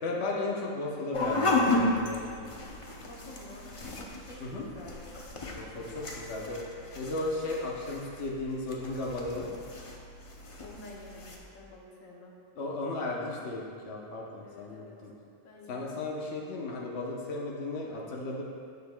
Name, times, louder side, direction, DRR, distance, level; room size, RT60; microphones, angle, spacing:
voice 1, 0.0-2.6 4.4-4.7 5.5-6.6 7.0-9.5 12.6-15.1 15.7-18.4, left 2 dB, 60° left, -2 dB, 1.1 m, -35 dB
sound 1, 1.1-11.4, left 2 dB, 35° left, 0.5 m, -34 dB
voice 2, 3.0-5.2 5.8-6.9 10.6-12.4 14.4-15.0 15.4-16.1, left 2 dB, 80° left, -2 dB, 1.3 m, -50 dB
9.3 x 6.8 x 2.2 m, 2.3 s
omnidirectional pair, 1.4 m